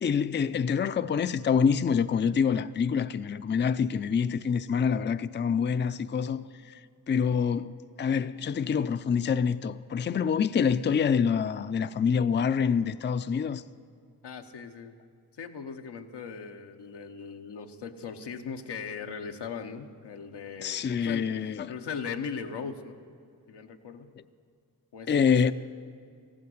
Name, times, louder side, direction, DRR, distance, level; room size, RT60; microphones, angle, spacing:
voice 1, 0.0-6.8 7.1-7.7 8.0-13.6 20.6-21.7 25.1-25.5, left 6 dB, 30° left, 0.4 m, -26 dB
voice 2, 14.2-14.9 15.3-23.0 23.5-24.1 24.9-25.5, left 6 dB, 85° left, 0.9 m, -39 dB
15.0 x 8.7 x 7.7 m
cardioid pair, 45°, 40 cm